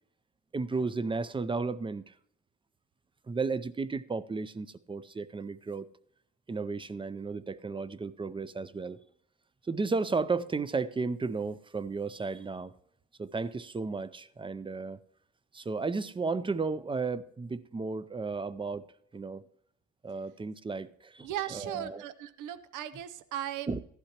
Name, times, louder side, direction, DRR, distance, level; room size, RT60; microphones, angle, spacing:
voice 1, 0.5-2.1 3.3-5.9 6.5-9.0 9.7-12.7 13.2-15.0 15.5-18.9 19.1-19.4 20.0-22.0 23.7-23.8, right 4 dB, 15° right, 0.4 m, -34 dB
voice 2, 21.2-23.7, right 11 dB, 85° right, 0.6 m, -37 dB
15.0 x 11.5 x 2.9 m
cardioid pair, 90°, 30 cm